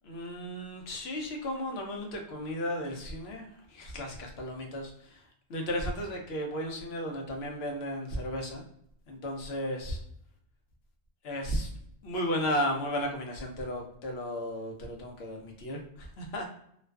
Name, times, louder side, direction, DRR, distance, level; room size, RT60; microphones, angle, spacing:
voice 1, 0.0-5.2 5.5-8.6 9.1-10.0 11.2-11.7 12.0-16.5, equal, 70° left, 2 dB, 0.9 m, -34 dB
2.4 x 2.3 x 2.2 m, 0.71 s
omnidirectional pair, 1.1 m